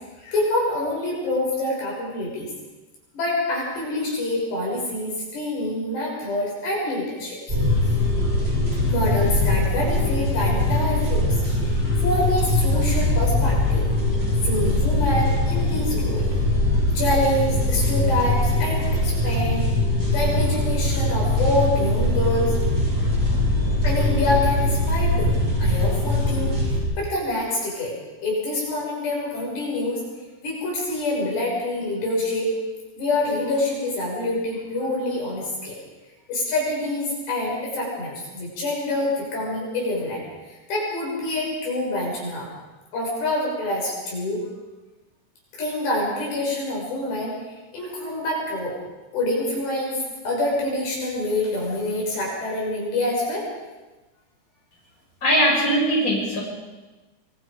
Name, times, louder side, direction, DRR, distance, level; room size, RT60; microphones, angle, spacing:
voice 1, 0.2-2.5 3.1-7.6 7.8-8.0 8.9-13.9 14.4-16.2 17.0-19.7 20.1-22.6 23.8-25.4 25.6-26.5 27.0-28.0 28.2-30.0 30.4-32.6 33.0-35.8 36.3-42.5 42.9-44.5 45.5-48.8 49.1-50.0 50.3-53.4, left 1 dB, 75° left, -3 dB, 8.6 m, -26 dB
sound 1, 7.5-26.8, left 1 dB, 15° right, 7.3 m, -22 dB
voice 2, 55.2-56.4, equal, 20° left, -4 dB, 7.4 m, -20 dB
25.0 x 23.5 x 5.3 m, 1.2 s
omnidirectional pair, 4.9 m